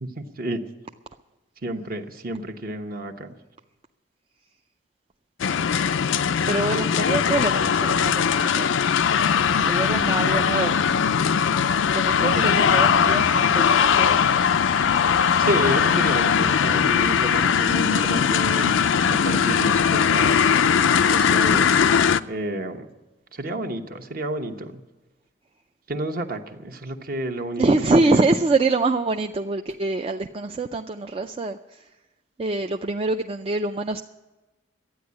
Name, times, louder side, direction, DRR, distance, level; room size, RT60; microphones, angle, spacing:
voice 1, 0.0-0.7 1.6-3.3 6.7-7.1 12.2-13.0 15.4-18.8 19.1-20.5 21.1-21.7 22.3-22.9 23.3-24.8 25.9-27.6 28.1-28.2, right 1 dB, 50° right, 5 dB, 1.1 m, -30 dB
sound 1, 5.4-22.2, left 7 dB, 90° left, 0.4 m, -20 dB
voice 2, 6.4-8.7 9.6-10.8 11.9-14.2 27.6-31.9 32.4-34.0, right 3 dB, 30° right, 5 dB, 0.4 m, -25 dB
12.5 x 9.5 x 9.6 m, 1.1 s
head